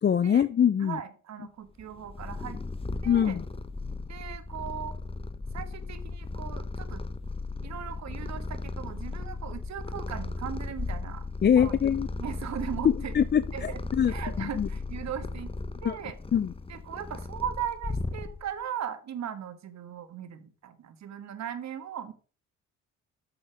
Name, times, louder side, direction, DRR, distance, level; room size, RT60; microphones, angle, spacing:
voice 1, 0.0-1.0 3.0-3.4 11.4-12.1 12.8-14.7 15.8-16.0 16.3-16.5, left 8 dB, 35° left, 14 dB, 0.6 m, -24 dB
voice 2, 0.8-2.6 3.0-3.4 4.1-4.9 5.5-7.0 7.6-11.2 11.6-11.7 12.2-13.2 13.5-13.8 14.1-15.5 15.8-16.2 16.7-22.1, right 9 dB, 65° right, 11 dB, 1.7 m, -38 dB
Purr, 1.8-18.6, left 3 dB, 20° left, 1.1 m, -36 dB
8.6 x 6.6 x 6.2 m, 0.38 s
cardioid pair, 90°, 30 cm